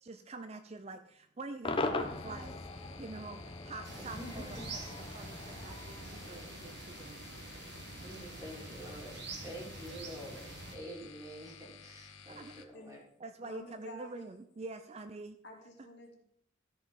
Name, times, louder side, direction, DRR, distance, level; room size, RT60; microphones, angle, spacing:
voice 1, 0.0-4.6 5.1-7.2 12.3-12.7 13.2-15.4, right 3 dB, 30° right, 9 dB, 0.5 m, -46 dB
Cheering / Crowd / Fireworks, 1.6-6.9, left 2 dB, 25° left, 0.9 m, -40 dB
sound 1, 1.9-12.6, left 7 dB, 90° left, 1.0 m, -54 dB
sound 2, 3.8-10.7, right 3 dB, 60° right, 1.6 m, -47 dB
voice 2, 4.0-4.7 6.0-6.5 8.0-13.0, equal, 15° right, -2 dB, 3.1 m, -48 dB
voice 3, 13.4-14.4 15.4-16.2, equal, 60° left, 0 dB, 2.5 m, -50 dB
13.5 x 5.4 x 5.6 m, 0.70 s
head